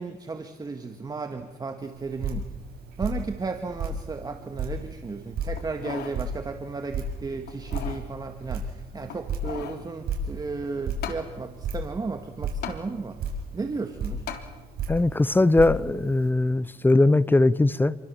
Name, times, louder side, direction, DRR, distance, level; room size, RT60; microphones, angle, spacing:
voice 1, 0.0-2.4 3.0-13.2 13.5-14.3, right 4 dB, 25° right, 2.0 m, -34 dB
Drip, 1.8-16.3, right 3 dB, 65° right, 6.7 m, -35 dB
sound 1, 5.6-6.2 6.7-6.8 7.5-8.1 9.1-9.8 11.0-11.3 12.6-12.8 14.3-14.5 15.1-15.2, left 9 dB, 75° left, 3.4 m, -37 dB
voice 2, 14.9-18.0, left 2 dB, 10° left, 0.8 m, -20 dB
29.0 x 24.0 x 7.2 m
cardioid pair, 110°, 17 cm